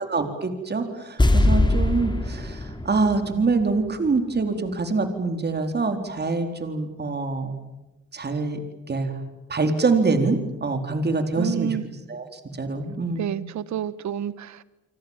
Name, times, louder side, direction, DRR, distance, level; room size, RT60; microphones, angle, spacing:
voice 1, 0.0-7.6 8.1-8.6 8.9-9.1 9.5-11.8 12.1-13.4, right 3 dB, 35° right, 6 dB, 4.3 m, -25 dB
sound 1, 1.2-4.4 4.7-4.8, left 2 dB, 15° left, 3.3 m, -23 dB
voice 2, 11.4-11.9 13.2-14.6, right 9 dB, 70° right, 17 dB, 1.4 m, -29 dB
29.5 x 24.5 x 7.5 m, 1.0 s
cardioid pair, 90°, 30 cm